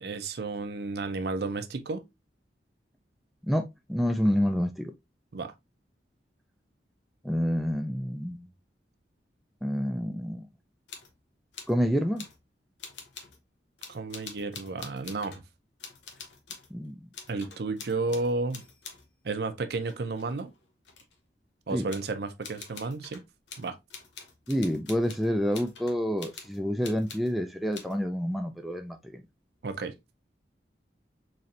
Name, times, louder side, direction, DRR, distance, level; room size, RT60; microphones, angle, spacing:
voice 1, 0.0-2.0 5.3-5.5 13.9-15.4 17.3-18.6 19.2-20.5 21.7-23.2 23.6-23.8 29.6-29.9, right 3 dB, 65° right, 0.5 m, -32 dB
voice 2, 3.4-4.9 7.2-8.5 9.6-10.5 11.7-12.3 16.7-17.1 21.7-21.9 24.5-29.2, equal, ahead, 0.3 m, -28 dB
sound 1, 10.9-11.2 11.5-11.8 12.2-12.4 12.8-13.4 13.8-15.4 15.8-16.7 17.1-19.1 19.7-21.1 21.9-22.1 22.4-27.3 27.7-28.0, left 5 dB, 85° left, 0.8 m, -46 dB
4.2 x 3.1 x 2.4 m
head